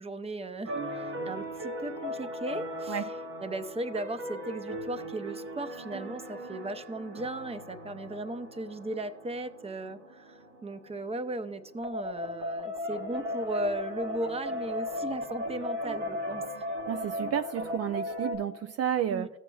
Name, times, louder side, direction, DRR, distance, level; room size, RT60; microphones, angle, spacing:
voice 1, 0.0-16.7 19.1-19.3, right 1 dB, 20° right, 11 dB, 0.7 m, -37 dB
sound 1, 0.6-18.3, left 1 dB, 75° right, 1.4 m, -37 dB
voice 2, 16.9-19.3, right 10 dB, 55° right, 9 dB, 0.4 m, -31 dB
16.0 x 7.1 x 2.3 m, 1.0 s
supercardioid pair, 65°, 30 cm